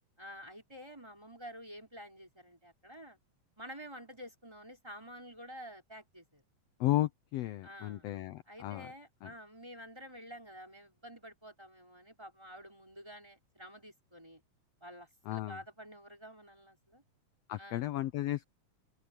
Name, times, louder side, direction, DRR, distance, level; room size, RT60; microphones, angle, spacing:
voice 1, 0.2-3.2 3.6-6.4 7.6-8.1 8.5-14.4 14.8-17.0 17.6-17.8, equal, 5° right, 5.0 m, -50 dB
voice 2, 6.8-8.9 9.2-9.3 15.3-15.6 17.5-18.5, left 15 dB, 75° left, 1.5 m, -34 dB
open air
omnidirectional pair, 3.6 m